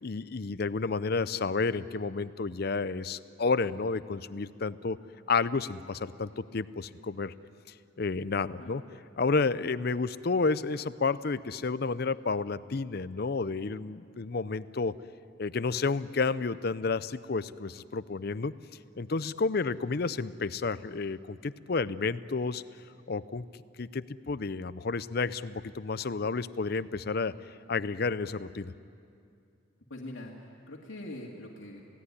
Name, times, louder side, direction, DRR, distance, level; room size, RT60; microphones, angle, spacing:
voice 1, 0.0-5.0 5.3-7.3 8.0-8.8 9.2-14.9 15.4-18.5 18.9-22.6 23.1-23.4 23.8-27.3 27.7-28.7, left 4 dB, 50° left, 16 dB, 0.6 m, -31 dB
voice 2, 29.9-31.8, left 1 dB, 85° left, -2 dB, 2.2 m, -43 dB
28.5 x 17.0 x 9.8 m, 2.5 s
head